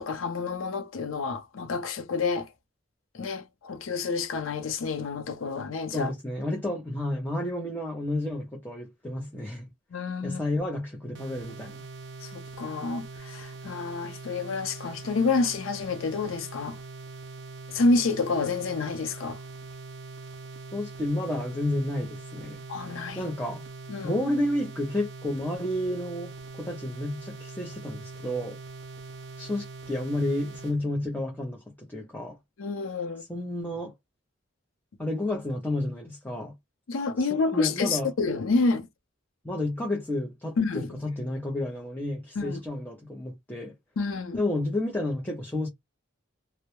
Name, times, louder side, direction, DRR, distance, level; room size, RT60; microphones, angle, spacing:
voice 1, 0.0-2.5 3.1-6.1 9.9-10.4 12.2-16.8 17.7-19.4 22.7-23.3 23.9-24.2 32.6-33.2 36.9-38.9 40.6-40.9 42.4-42.6 44.0-44.4, left 3 dB, 90° left, 0.5 m, -28 dB
voice 2, 5.9-9.7 10.2-11.8 20.7-22.6 23.2-23.6 24.0-28.6 29.4-31.6 31.9-32.4 33.2-33.9 35.0-36.5 37.2-38.1 39.4-43.8 44.3-45.7, left 1 dB, 10° left, 0.5 m, -31 dB
sound 1, 11.1-30.8, right 3 dB, 65° right, 0.4 m, -42 dB
2.2 x 2.0 x 2.8 m
head